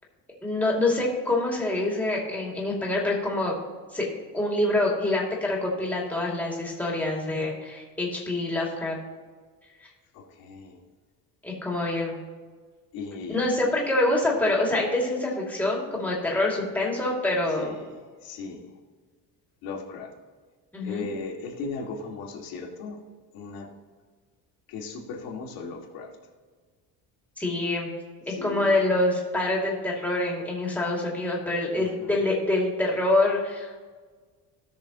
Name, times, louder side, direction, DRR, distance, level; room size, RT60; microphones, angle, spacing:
voice 1, 0.4-3.5 3.9-4.1 4.3-9.0 11.4-12.2 13.3-17.7 20.7-21.0 27.4-27.9 28.3-33.8, left 2 dB, 5° left, -3 dB, 2.5 m, -26 dB
voice 2, 10.1-10.8 12.9-13.7 17.6-17.9 18.2-18.7 19.6-20.1 20.8-23.0 23.3-23.7 24.7-26.1 28.3-28.7 31.7-32.1, left 4 dB, 80° left, -1 dB, 2.4 m, -37 dB
17.5 x 6.5 x 3.0 m, 1.5 s
cardioid pair, 160°, 35 cm